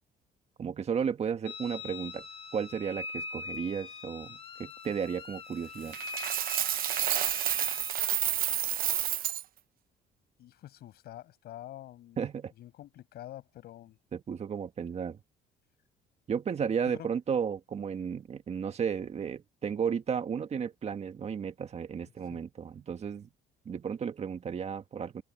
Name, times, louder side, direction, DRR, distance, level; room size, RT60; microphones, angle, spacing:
voice 1, 0.6-2.3 2.5-6.0 12.2-12.5 14.1-15.2 16.3-23.3 23.7-25.2, right 7 dB, 40° right, 1.8 m, -33 dB
sound 1, 1.5-7.9, left 3 dB, 35° left, 1.5 m, -42 dB
Coin (dropping), 5.9-9.4, right 12 dB, 60° right, 0.9 m, -30 dB
voice 2, 10.4-12.3 12.6-14.0 16.9-17.1 22.3-22.4, left 13 dB, 70° left, 7.1 m, -47 dB
cardioid pair, 110°, 17 cm